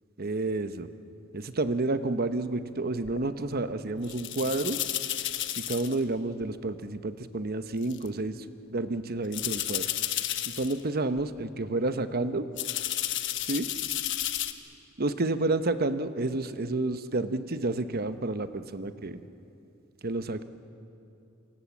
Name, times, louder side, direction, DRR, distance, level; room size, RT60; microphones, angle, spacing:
voice 1, 0.2-0.9 1.3-4.8 5.6-9.8 10.5-12.4 13.5-13.7 15.0-19.2 20.0-20.4, right 2 dB, 50° right, 11 dB, 1.0 m, -30 dB
sound 1, 3.0-3.2 4.0-6.0 6.4-6.5 7.8-8.1 9.3-10.8 11.2-11.4 12.6-14.5, left 12 dB, 60° left, 1.2 m, -32 dB
28.0 x 25.5 x 7.3 m, 2.7 s
head